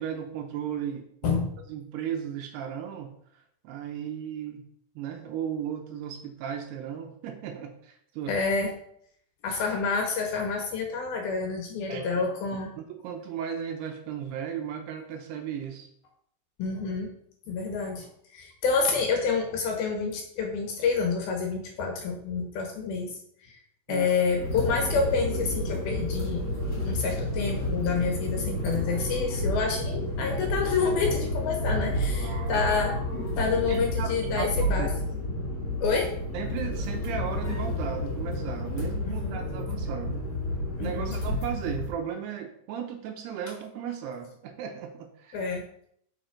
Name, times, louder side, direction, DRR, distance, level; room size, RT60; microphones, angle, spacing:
voice 1, 0.0-1.4 1.7-4.7 5.0-8.4 11.9-12.2 12.8-15.9 23.9-24.1 32.1-32.7 33.7-34.9 36.3-40.3 40.8-45.4, right 8 dB, 75° right, 5 dB, 2.6 m, -36 dB
voice 2, 8.3-8.7 9.4-12.7 16.6-17.1 17.5-23.1 23.4-23.6 23.9-26.5 26.9-33.0 33.4-34.9 35.8-36.1 39.1-39.4 40.8-41.1 45.3-45.6, left 5 dB, 70° left, 2 dB, 2.7 m, -28 dB
sound 1, 24.2-41.9, left 1 dB, 35° left, 2.6 m, -30 dB
7.0 x 6.2 x 5.1 m, 0.68 s
omnidirectional pair, 5.1 m